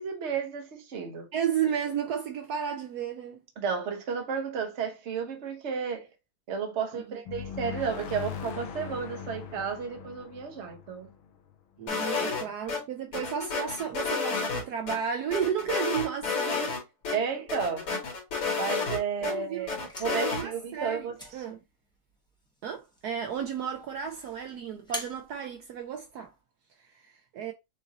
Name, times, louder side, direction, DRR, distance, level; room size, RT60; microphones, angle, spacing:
voice 1, 0.0-1.3 3.6-6.1 6.5-11.1 12.1-12.4 17.1-17.9 18.6-21.1, right 6 dB, 50° right, 0.9 m, -32 dB
voice 2, 1.3-3.4 7.1-7.2 11.8-16.8 18.8-18.9 19.2-19.7 20.1-21.6 22.6-26.3 27.0-27.5, right 8 dB, 80° right, 0.8 m, -33 dB
sound 1, 7.2-11.9, left 7 dB, 75° left, 1.5 m, -40 dB
sound 2, 11.9-12.8 13.1-15.0 15.3-16.8 17.0-17.2 17.5-19.3 19.7-20.4, left 4 dB, 90° left, 2.6 m, -30 dB
sound 3, 19.6-26.4, equal, 5° left, 0.5 m, -47 dB
6.9 x 2.6 x 2.8 m
omnidirectional pair, 2.4 m